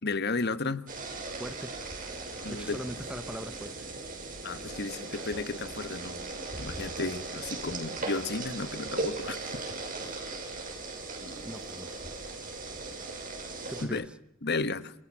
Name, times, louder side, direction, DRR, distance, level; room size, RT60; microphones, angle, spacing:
voice 1, 0.0-0.8 2.4-2.8 4.4-6.2 6.6-9.5 13.8-14.0 14.4-14.9, left 3 dB, 55° left, 12 dB, 1.4 m, -33 dB
sound 1, 0.9-13.9, right 3 dB, 40° right, 6.5 m, -38 dB
voice 2, 1.4-1.7 2.5-3.9 11.4-11.9 13.7-14.0, equal, 5° right, 12 dB, 1.1 m, -40 dB
28.5 x 27.5 x 7.5 m, 0.80 s
head